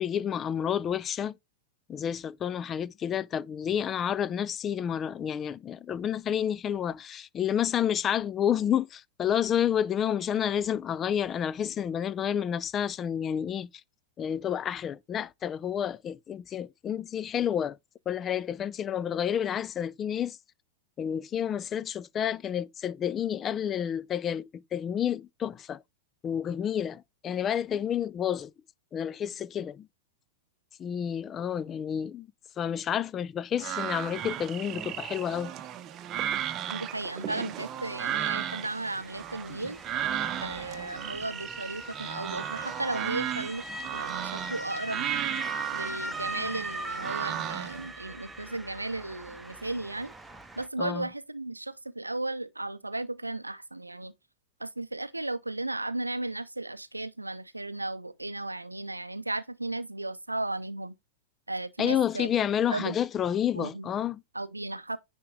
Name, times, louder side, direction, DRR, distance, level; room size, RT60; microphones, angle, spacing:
voice 1, 0.0-1.4 1.9-13.7 14.2-17.8 18.1-20.4 21.0-25.8 26.2-28.5 28.9-29.9 30.8-32.3 32.6-35.5 50.8-51.1 61.8-64.2, left 9 dB, 25° left, 0.3 m, -30 dB
sound 1, 33.6-47.9, right 10 dB, 30° right, 0.8 m, -35 dB
voice 2, 36.7-39.8 40.4-43.7 43.9-45.1 45.7-50.1 50.6-54.1 54.6-60.9 61.5-62.3 62.7-63.0 63.5-63.9 64.3-65.0, right 2 dB, 85° right, 0.5 m, -35 dB
Motor vehicle (road) / Siren, 38.8-50.7, right 1 dB, 10° right, 1.0 m, -40 dB
9.8 x 3.7 x 3.6 m
figure-of-eight pair, 90°, 0 cm